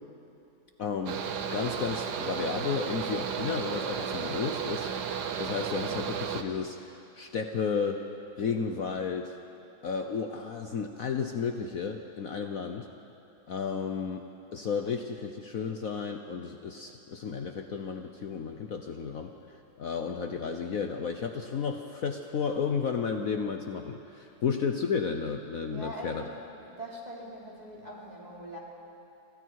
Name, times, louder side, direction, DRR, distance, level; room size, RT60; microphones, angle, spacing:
voice 1, 0.8-1.2 1.5-4.9 5.4-8.0 8.4-9.4 9.8-12.9 13.5-14.2 14.5-26.2, left 6 dB, 55° left, 5 dB, 1.3 m, -33 dB
Mechanical fan, 1.1-6.4, right 7 dB, 70° right, 1.6 m, -33 dB
voice 2, 25.7-26.4 26.6-28.6, equal, 20° right, -4 dB, 3.7 m, -42 dB
29.5 x 25.0 x 4.7 m, 2.8 s
omnidirectional pair, 1.9 m